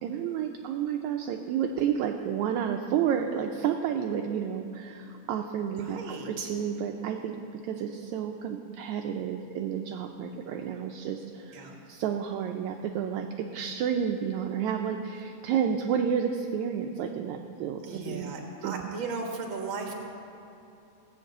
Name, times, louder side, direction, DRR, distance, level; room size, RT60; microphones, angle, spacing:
voice 1, 0.0-18.4 18.6-18.9, right 8 dB, 80° right, 3 dB, 1.9 m, -31 dB
voice 2, 5.7-6.5 11.5-11.8 17.8-19.9, right 4 dB, 45° right, 1 dB, 2.1 m, -36 dB
17.5 x 6.7 x 7.9 m, 2.9 s
omnidirectional pair, 3.6 m